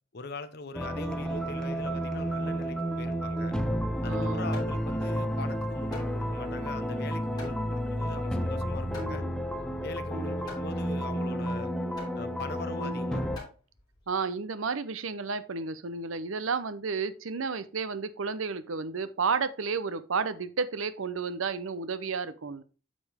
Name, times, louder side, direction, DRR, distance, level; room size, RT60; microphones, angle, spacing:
voice 1, 0.1-3.5 4.0-9.2 9.8-11.7 12.1-13.3, left 3 dB, 50° left, 10 dB, 0.8 m, -42 dB
sound 1, 0.7-13.4, equal, 5° left, 0.6 m, -31 dB
Hammer, 3.9-14.1, left 3 dB, 20° left, 3.1 m, -50 dB
voice 2, 4.0-4.5 8.8-9.4 10.1-10.4 12.8-13.0 14.1-22.6, right 5 dB, 75° right, 14 dB, 0.7 m, -32 dB
8.4 x 5.2 x 3.5 m, 0.36 s
head